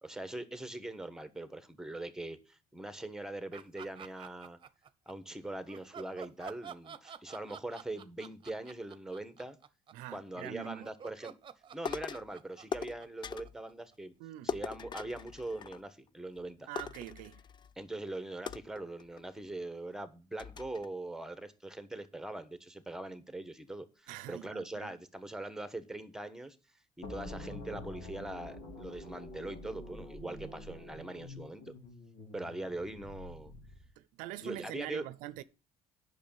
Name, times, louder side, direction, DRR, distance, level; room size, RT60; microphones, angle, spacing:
voice 1, 0.0-4.6 5.1-9.6 10.1-11.3 11.7-14.1 14.4-16.7 17.8-26.6 27.0-31.7 32.3-33.5 34.4-35.0, right 2 dB, 5° right, 1.3 m, -42 dB
sound 1, 3.5-5.1 5.7-13.9, right 7 dB, 40° right, 0.9 m, -49 dB
voice 2, 9.9-10.9 14.2-14.5 16.7-17.4 24.1-24.9 34.0-35.4, right 15 dB, 85° right, 0.6 m, -44 dB
sound 2, 11.8-12.3 12.7-13.6 14.5-16.1 16.4-16.5 16.7-17.7 18.5-19.4 19.9-20.0 20.4-20.9, left 7 dB, 35° left, 0.4 m, -41 dB
sound 3, 27.0-33.9, left 2 dB, 80° left, 3.9 m, -47 dB
8.4 x 6.2 x 7.3 m
supercardioid pair, 85°, 13 cm